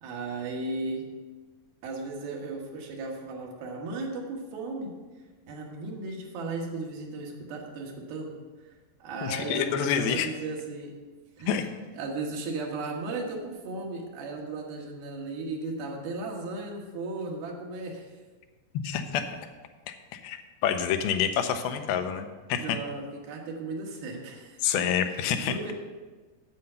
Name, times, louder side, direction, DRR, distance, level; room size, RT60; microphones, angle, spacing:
voice 1, 0.0-1.1 1.8-4.9 5.5-8.3 8.6-8.7 9.0-11.0 11.4-11.6 11.9-18.1 19.2-19.4 22.6-24.8 25.4-25.7, right 3 dB, 80° right, 0 dB, 3.3 m, -36 dB
voice 2, 9.2-10.3 11.5-11.7 18.8-19.2 19.9-22.8 24.6-25.5, left 8 dB, 90° left, 8 dB, 2.6 m, -28 dB
9.3 x 7.8 x 5.6 m, 1.3 s
omnidirectional pair, 4.2 m